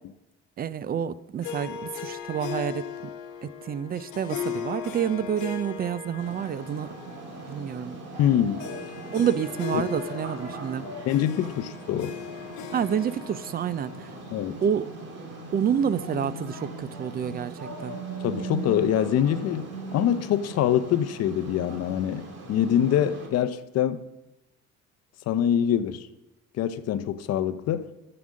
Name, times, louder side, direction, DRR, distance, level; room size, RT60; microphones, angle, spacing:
voice 1, 0.6-3.1 3.4-6.9 7.5-8.0 9.1-10.9 12.7-14.1 14.6-14.9 15.5-17.9, right 8 dB, 30° right, 0.4 m, -28 dB
Harp, 1.4-15.1, left 8 dB, 80° left, 1.0 m, -38 dB
sound 1, 6.2-23.3, right 3 dB, 55° right, 2.5 m, -40 dB
voice 2, 8.2-8.6 9.7-9.8 11.1-12.2 14.3-14.6 18.2-24.0 25.3-26.1 26.6-27.9, left 10 dB, 55° left, 0.6 m, -25 dB
9.2 x 7.9 x 6.2 m
cardioid pair, 120°, 29 cm